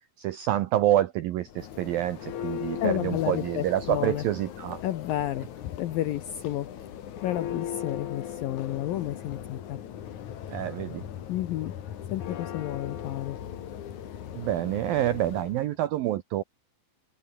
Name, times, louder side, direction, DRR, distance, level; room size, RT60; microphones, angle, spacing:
voice 1, 0.2-4.8 10.5-11.1 14.3-16.4, right 13 dB, 80° right, 2.1 m, -27 dB
Church bell, 1.4-15.6, left 10 dB, 55° left, 2.5 m, -38 dB
voice 2, 2.8-4.3 4.8-5.5 5.8-6.7 7.2-9.8 11.3-11.7 12.1-13.4, left 13 dB, 80° left, 2.0 m, -31 dB
omnidirectional pair, 5.4 m